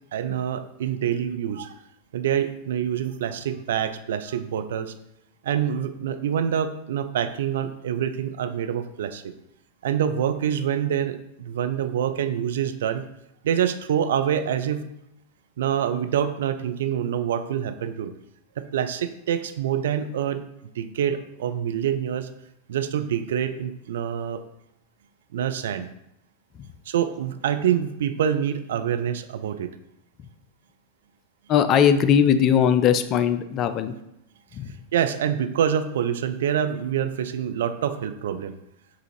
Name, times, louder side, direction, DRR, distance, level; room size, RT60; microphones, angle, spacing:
voice 1, 0.1-1.7 2.1-4.9 5.4-9.3 9.8-13.1 13.4-14.9 15.6-18.1 18.6-20.4 20.8-22.3 22.7-24.4 25.3-25.9 26.9-29.7 34.9-38.6, right 9 dB, 60° right, 9 dB, 0.3 m, -26 dB
voice 2, 31.5-33.9 34.5-34.7, left 8 dB, 35° left, 10 dB, 0.3 m, -19 dB
5.5 x 2.5 x 3.1 m, 0.82 s
figure-of-eight pair, 90°, 0 cm